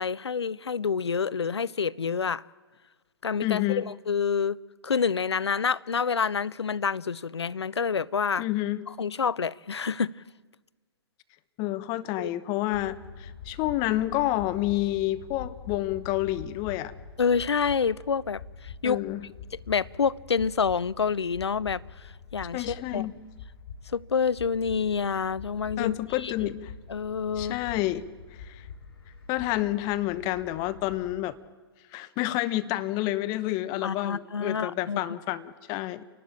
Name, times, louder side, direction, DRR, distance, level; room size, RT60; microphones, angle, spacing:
voice 1, 0.0-2.4 3.2-4.6 4.8-8.5 9.0-10.1 12.2-12.3 17.2-19.0 19.7-23.1 23.9-26.5 26.9-27.6 33.8-35.0, left 6 dB, 80° left, 0.6 m, -28 dB
voice 2, 3.4-3.9 8.4-8.8 11.6-16.9 18.8-19.3 22.5-23.1 25.8-26.7 27.4-28.0 28.4-28.7 29.3-31.4 31.9-36.0, left 16 dB, 30° left, 0.9 m, -29 dB
sound 1, 12.7-31.1, left 6 dB, 60° left, 7.1 m, -45 dB
29.0 x 12.0 x 8.7 m
figure-of-eight pair, 120°, 14 cm